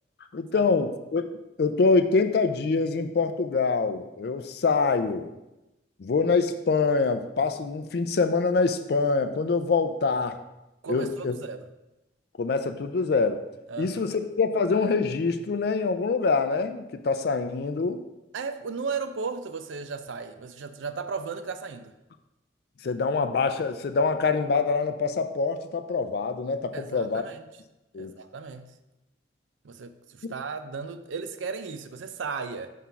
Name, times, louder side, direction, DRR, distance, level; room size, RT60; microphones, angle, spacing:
voice 1, 0.3-1.3 1.6-5.3 6.0-10.4 10.9-11.3 12.4-13.4 13.8-18.0 22.8-27.2 27.9-28.1 30.2-30.3, left 4 dB, 55° left, 9 dB, 0.4 m, -25 dB
voice 2, 10.8-11.6 13.7-14.2 18.3-21.9 26.7-27.5 28.0-28.7 29.6-32.7, right 5 dB, 85° right, 10 dB, 0.5 m, -35 dB
5.7 x 3.6 x 5.7 m, 0.98 s
head